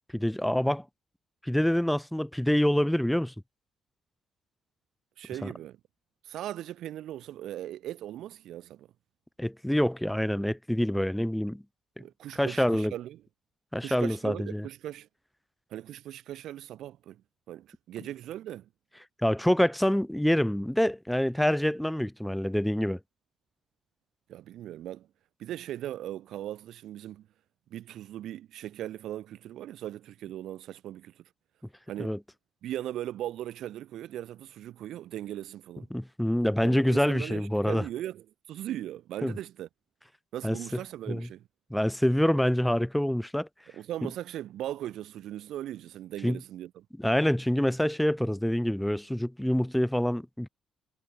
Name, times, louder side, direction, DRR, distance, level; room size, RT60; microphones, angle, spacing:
voice 1, 0.1-0.8 1.4-3.3 5.4-5.5 9.4-11.6 12.4-12.9 13.7-14.6 19.2-23.0 32.0-32.2 35.9-37.8 39.2-39.3 40.4-40.6 41.1-41.3 41.7-43.5 46.2-46.4 47.0-50.5, equal, 5° left, 4.1 m, -26 dB
voice 2, 5.2-5.8 6.2-8.9 12.0-13.2 13.8-15.1 15.7-17.2 17.5-18.7 24.3-25.1 25.4-27.3 27.7-31.2 31.9-32.2 32.6-35.9 36.6-39.7 40.3-41.4 43.7-46.9, right 12 dB, 80° right, 6.3 m, -39 dB
cardioid pair, 90°, 0 cm